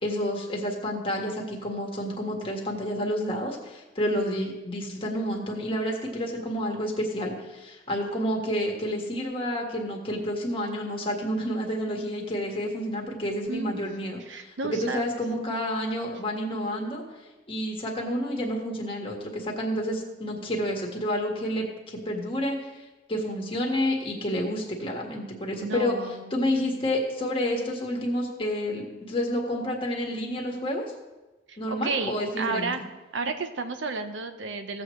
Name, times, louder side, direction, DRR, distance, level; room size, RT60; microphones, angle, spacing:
voice 1, 0.0-17.0 17.5-22.6 23.1-25.9 26.3-30.8 31.6-32.8, equal, 30° left, -1 dB, 1.7 m, -29 dB
voice 2, 13.5-13.8 14.3-15.1 25.6-26.8 31.5-32.8 33.1-34.8, right 3 dB, 85° right, 8 dB, 0.8 m, -32 dB
16.0 x 7.8 x 3.2 m, 1.1 s
head